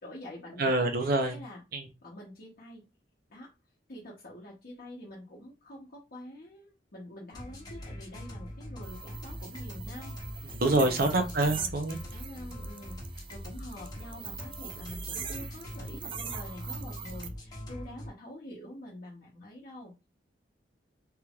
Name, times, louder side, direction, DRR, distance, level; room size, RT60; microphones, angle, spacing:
voice 1, 0.0-0.9 1.3-1.6 2.0-2.8 3.3-3.5 3.9-11.0 11.4-11.7 12.1-19.9, left 1 dB, 55° left, -5 dB, 0.8 m, -46 dB
voice 2, 0.6-1.4 1.7-1.9 10.6-12.0, right 2 dB, 55° right, 6 dB, 0.7 m, -26 dB
sound 1, 7.3-18.1, equal, 20° left, 1.0 m, -42 dB
sound 2, 8.8-17.3, right 7 dB, 30° right, 0.3 m, -42 dB
3.5 x 3.0 x 2.3 m, 0.26 s
head